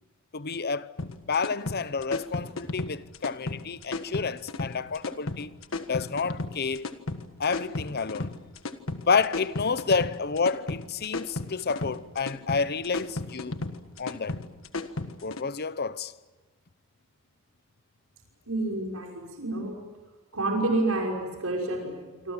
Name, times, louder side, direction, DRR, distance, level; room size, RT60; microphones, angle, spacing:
voice 1, 0.3-0.9 1.3-5.5 5.9-6.9 7.4-8.3 9.1-13.6 14.0-14.4 15.2-16.1, left 5 dB, 50° left, 0.8 m, -29 dB
sound 1, 1.0-15.4, left 2 dB, 70° left, 1.6 m, -34 dB
voice 2, 18.5-19.8 20.3-22.3, right 2 dB, 85° right, 5.9 m, -29 dB
27.0 x 26.0 x 7.5 m
head